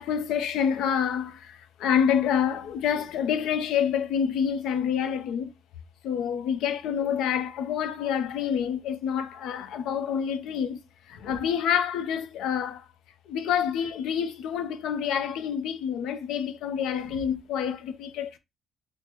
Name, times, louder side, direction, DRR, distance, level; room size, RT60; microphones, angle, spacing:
voice 1, 0.0-5.5 6.0-10.8 11.1-12.9 13.3-18.4, left 8 dB, 85° left, 0.5 m, -27 dB
4.4 x 2.0 x 3.1 m
cardioid pair, 90°, 0 cm